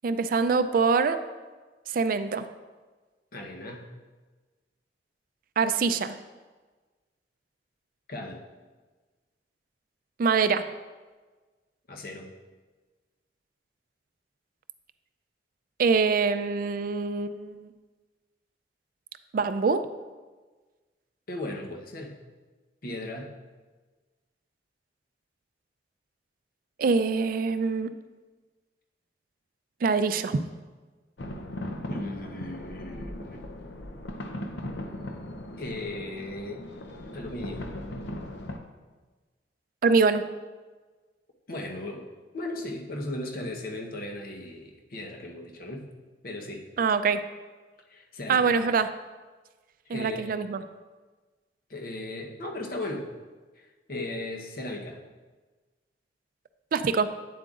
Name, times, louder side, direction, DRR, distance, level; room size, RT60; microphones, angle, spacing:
voice 1, 0.0-1.2 1.9-2.5 5.6-6.1 10.2-10.7 15.8-17.7 19.3-19.8 26.8-27.9 29.8-30.4 39.8-40.2 46.8-47.2 48.3-48.9 49.9-50.6 56.7-57.1, right 5 dB, 50° right, 11 dB, 0.4 m, -24 dB
voice 2, 3.3-3.9 8.1-8.4 11.9-12.3 21.3-22.2 22.8-23.3 31.9-33.4 35.6-36.6 37.1-37.6 41.5-42.1 42.3-45.9 46.2-46.6 47.9-48.7 49.9-50.3 51.7-53.1 53.6-55.0, left 1 dB, 55° left, 2 dB, 0.9 m, -36 dB
sound 1, 31.2-38.6, left 1 dB, 80° left, 0.7 m, -38 dB
9.4 x 7.6 x 2.5 m, 1.3 s
head